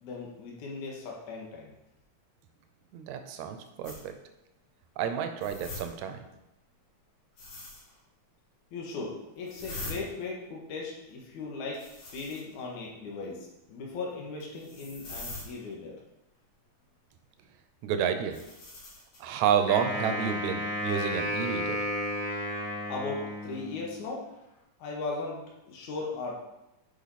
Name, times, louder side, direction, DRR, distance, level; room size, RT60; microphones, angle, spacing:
voice 1, 0.0-1.7 8.7-11.8 12.1-15.9 22.9-24.2 24.8-26.4, left 3 dB, 75° left, -2 dB, 2.8 m, -37 dB
voice 2, 2.9-4.1 5.0-6.2 17.8-18.4 19.2-21.8, right 8 dB, 75° right, 7 dB, 2.0 m, -30 dB
sound 1, 3.8-4.0 5.4-5.8 7.4-7.9 9.4-9.9 11.7-12.5 14.4-15.5 18.3-19.2, left 2 dB, 90° left, 4.5 m, -42 dB
Wind instrument woodwind instrument, 19.7-24.0, left 1 dB, 30° left, 2.7 m, -33 dB
9.5 x 5.4 x 4.2 m, 0.93 s
omnidirectional pair, 3.5 m